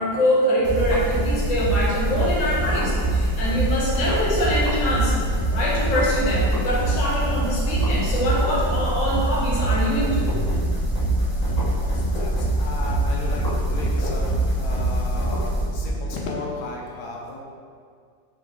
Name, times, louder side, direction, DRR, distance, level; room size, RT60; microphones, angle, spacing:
voice 1, 0.0-5.1 5.5-10.5, equal, 85° left, -6 dB, 1.6 m, -24 dB
sound 1, 0.6-16.1, right 1 dB, 50° left, 0.5 m, -23 dB
voice 2, 11.2-17.4, left 3 dB, 70° left, -2 dB, 1.1 m, -35 dB
4.7 x 2.2 x 3.5 m, 2.2 s
omnidirectional pair, 2.0 m